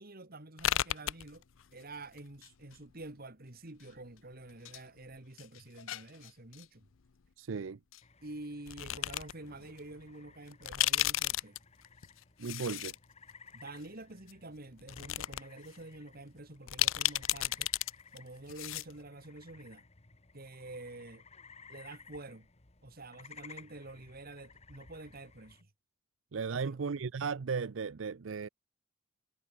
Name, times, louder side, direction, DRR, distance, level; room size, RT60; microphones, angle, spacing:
voice 1, 0.0-1.4 1.7-6.9 8.2-11.6 13.5-17.7 18.1-19.8 20.3-21.2 21.7-22.5 22.8-25.7 26.5-26.9, right 2 dB, 50° right, 2.6 m, -48 dB
sound 1, 0.6-3.0 3.8-4.8 5.1-6.7 7.9-8.0 8.7-9.3 9.8-9.9 10.5-13.0 13.3-13.4 14.3-14.4 14.8-15.4 15.7-15.8 16.7-17.9 18.2-18.3 18.5-18.9, left 14 dB, 90° left, 0.6 m, -33 dB
voice 2, 7.4-7.8 12.4-12.9 26.3-28.5, right 5 dB, 75° right, 0.5 m, -36 dB
sound 2, 8.0-25.6, left 5 dB, 35° left, 1.5 m, -58 dB
sound 3, 9.0-11.5, left 1 dB, 65° left, 7.8 m, -65 dB
head